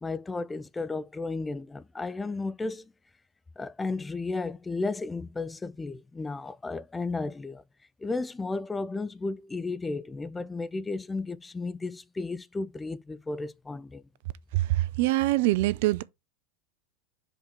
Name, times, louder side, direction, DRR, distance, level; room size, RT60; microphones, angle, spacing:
voice 1, 0.0-2.9 3.6-7.6 8.0-14.0, left 3 dB, 15° left, 0.4 m, -33 dB
voice 2, 14.5-16.0, right 17 dB, 60° right, 0.5 m, -24 dB
5.2 x 4.3 x 6.2 m
figure-of-eight pair, 85°, 0 cm